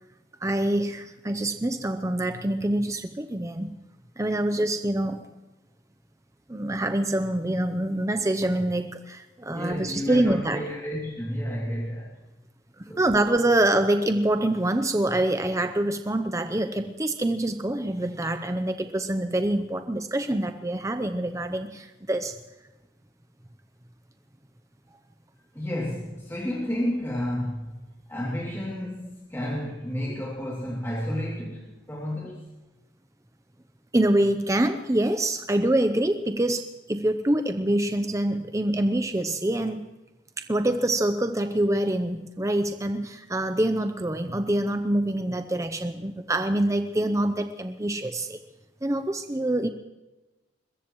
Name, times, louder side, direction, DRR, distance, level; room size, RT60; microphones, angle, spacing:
voice 1, 0.4-3.7 4.2-5.3 6.5-10.6 13.0-22.3 33.9-39.9 40.4-48.4 48.8-49.7, right 1 dB, 15° right, 7 dB, 0.7 m, -25 dB
voice 2, 9.5-12.2 12.9-13.0 25.5-27.7 28.1-32.5, equal, 10° left, -5 dB, 2.6 m, -31 dB
21.5 x 21.5 x 3.1 m, 1.1 s
head